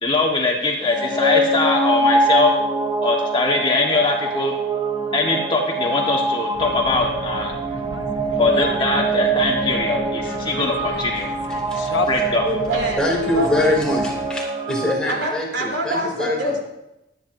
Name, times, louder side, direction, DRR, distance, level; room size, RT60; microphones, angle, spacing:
voice 1, 0.0-2.5 3.0-4.5 5.1-7.5 8.4-11.3 12.1-12.4, left 3 dB, 25° left, -1 dB, 1.5 m, -21 dB
sound 1, 0.8-14.9, right 2 dB, 25° right, 0.9 m, -24 dB
sound 2, 6.5-14.3, left 3 dB, 90° left, 1.0 m, -33 dB
voice 2, 12.4-13.1 13.3-13.8 15.1-16.6, right 1 dB, 75° right, -1 dB, 3.6 m, -25 dB
voice 3, 13.0-16.6, left 1 dB, 5° left, -4 dB, 3.1 m, -23 dB
23.0 x 9.3 x 2.7 m, 0.89 s
head